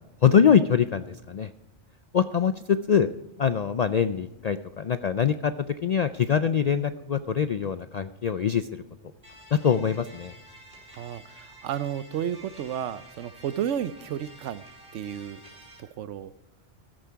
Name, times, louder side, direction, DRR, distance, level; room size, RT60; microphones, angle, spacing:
voice 1, 0.2-1.5 2.1-3.1 3.4-8.8 9.5-10.3, left 7 dB, 65° left, 12 dB, 0.4 m, -23 dB
sound 1, 9.2-15.8, right 1 dB, 50° right, 5.7 m, -50 dB
voice 2, 10.9-14.6 14.9-15.4 16.0-16.3, right 9 dB, 80° right, 16 dB, 1.0 m, -32 dB
14.5 x 12.5 x 4.6 m, 1.0 s
omnidirectional pair, 1.2 m